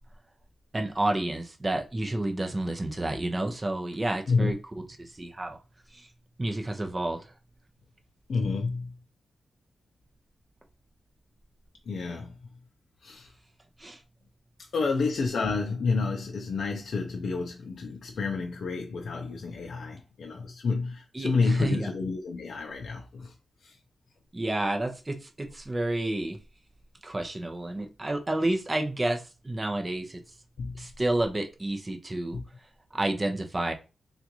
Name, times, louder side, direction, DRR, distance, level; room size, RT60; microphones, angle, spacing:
voice 1, 0.7-4.6 5.0-5.6 5.9-6.1 6.4-7.3 13.8-14.0 21.1-21.9 24.3-26.4 27.0-30.2 30.8-32.4 32.9-33.7, right 1 dB, 25° right, 0.7 m, -30 dB
voice 2, 8.3-8.9 11.9-12.3 13.0-13.3 14.7-23.3 23.6-23.7 30.6-30.8 32.3-32.4, left 4 dB, 75° left, 0.5 m, -29 dB
3.6 x 2.4 x 3.0 m
cardioid pair, 85°, 0 cm